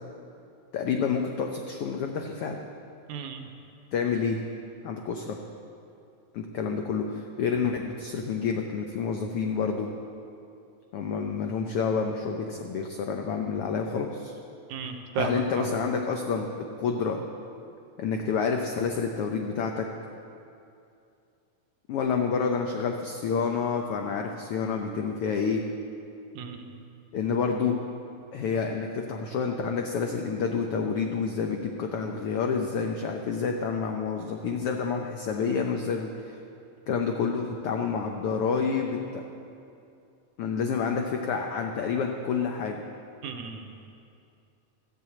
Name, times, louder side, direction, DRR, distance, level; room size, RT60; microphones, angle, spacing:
voice 1, 0.7-2.6 3.9-4.4 4.8-5.4 6.3-9.9 10.9-14.4 15.2-17.2 18.0-19.9 21.9-25.6 27.1-27.8 28.3-36.4 36.9-39.2 40.4-42.8, left 5 dB, 80° left, 3 dB, 1.3 m, -28 dB
voice 2, 3.1-3.4 14.7-15.7 26.3-26.7 43.2-43.9, right 6 dB, 75° right, 5 dB, 2.1 m, -34 dB
14.0 x 6.2 x 8.3 m, 2.6 s
omnidirectional pair, 3.4 m